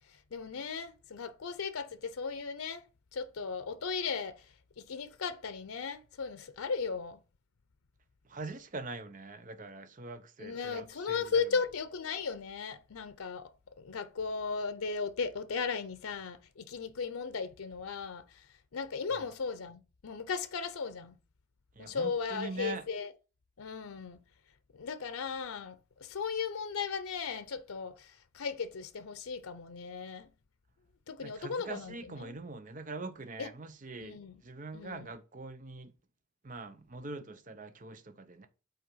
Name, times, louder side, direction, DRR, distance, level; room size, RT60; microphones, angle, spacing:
voice 1, 0.3-2.8 3.1-4.5 4.8-7.2 10.4-13.5 13.8-18.5 18.7-21.2 21.8-23.1 23.6-24.2 24.7-30.3 31.1-32.4 33.4-33.5 34.0-34.4 34.7-35.1, left 5 dB, 90° left, 0.6 m, -36 dB
voice 2, 8.2-11.6 21.8-22.8 31.2-35.9 36.4-38.5, right 3 dB, 40° right, 0.6 m, -43 dB
5.7 x 4.3 x 5.6 m
head